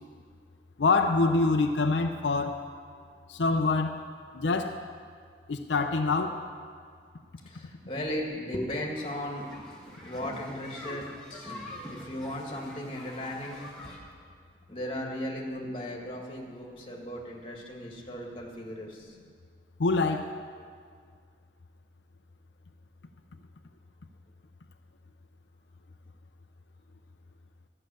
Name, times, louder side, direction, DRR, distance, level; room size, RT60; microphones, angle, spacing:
voice 1, 0.8-2.6 3.3-4.0 4.3-4.8 5.5-6.4 19.8-20.3, left 3 dB, 85° left, 5 dB, 0.6 m, -25 dB
voice 2, 7.4-9.5 10.0-11.5 11.9-13.6 14.7-19.2, left 1 dB, 30° left, 0 dB, 1.8 m, -36 dB
sound 1, 9.0-14.0, left 1 dB, ahead, 2.0 m, -45 dB
13.0 x 6.6 x 9.0 m, 2.1 s
head